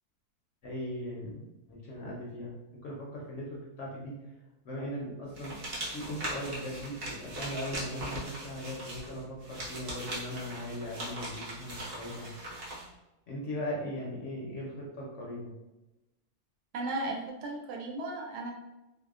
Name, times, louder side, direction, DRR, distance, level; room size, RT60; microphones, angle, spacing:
voice 1, 0.6-2.5 2.8-4.1 4.6-5.5 5.9-12.3 13.3-15.5, equal, 65° left, -4 dB, 0.8 m, -39 dB
sound 1, 5.3-12.9, right 1 dB, 50° right, 0.8 m, -40 dB
voice 2, 16.7-18.5, right 2 dB, 85° right, 0 dB, 1.1 m, -35 dB
2.6 x 2.1 x 2.3 m, 1.0 s
omnidirectional pair, 1.6 m